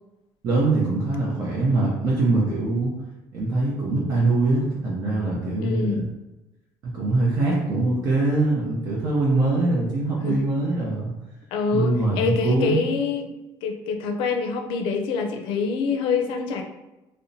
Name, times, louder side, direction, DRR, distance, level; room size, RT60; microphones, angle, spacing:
voice 1, 0.4-2.9 3.3-6.0 6.9-11.1 11.7-12.8, right 2 dB, 45° right, -5 dB, 0.5 m, -23 dB
voice 2, 5.6-6.1 10.2-10.3 11.5-13.3 13.6-16.6, left 5 dB, 80° left, 4 dB, 0.4 m, -25 dB
2.7 x 2.1 x 2.6 m, 1.0 s
cardioid pair, 145°, 9 cm